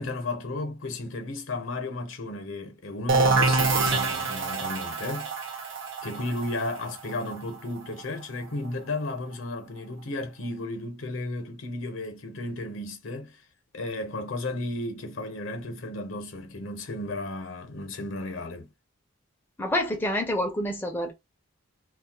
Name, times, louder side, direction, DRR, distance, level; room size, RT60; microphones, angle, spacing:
voice 1, 0.0-5.3 6.0-13.4 13.7-18.7, left 2 dB, 75° left, 0.7 m, -34 dB
sound 1, 3.1-8.7, right 3 dB, 65° right, 0.6 m, -26 dB
voice 2, 19.6-21.1, left 1 dB, 10° left, 0.4 m, -27 dB
2.3 x 2.1 x 2.8 m
head